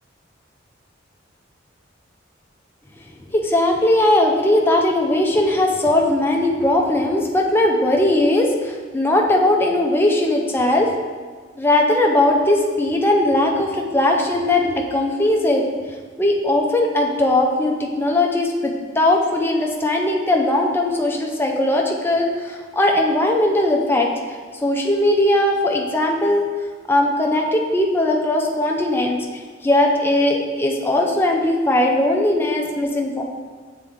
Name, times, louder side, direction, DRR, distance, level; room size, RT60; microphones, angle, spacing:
voice 1, 3.3-10.9 11.6-15.6 16.2-24.1 24.6-26.5 26.9-29.2 29.6-33.2, left 1 dB, 10° left, 0 dB, 0.5 m, -19 dB
7.6 x 3.7 x 3.6 m, 1.5 s
head